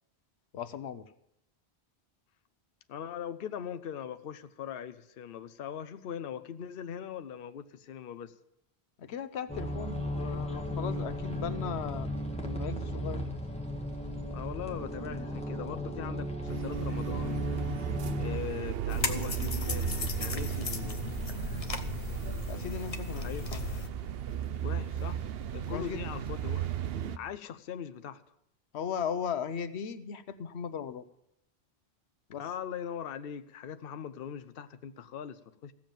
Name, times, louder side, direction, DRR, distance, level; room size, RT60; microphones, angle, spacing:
voice 1, 0.5-1.0 9.0-12.1 12.4-13.2 22.5-23.3 25.7-26.0 28.7-31.0 32.3-32.4, left 7 dB, 85° left, 13 dB, 1.0 m, -37 dB
voice 2, 2.9-8.3 14.3-17.6 18.2-19.9 20.2-21.0 23.1-23.5 24.6-25.2 25.5-26.7 27.2-28.2 32.4-35.7, left 8 dB, 65° left, 11 dB, 0.8 m, -40 dB
sound 1, 9.5-18.4, equal, 5° left, 1.7 m, -35 dB
sound 2, 16.5-27.2, right 10 dB, 70° right, 0.9 m, -36 dB
sound 3, 18.9-23.9, left 4 dB, 35° left, 0.9 m, -36 dB
15.5 x 7.4 x 9.0 m, 0.79 s
omnidirectional pair, 1.1 m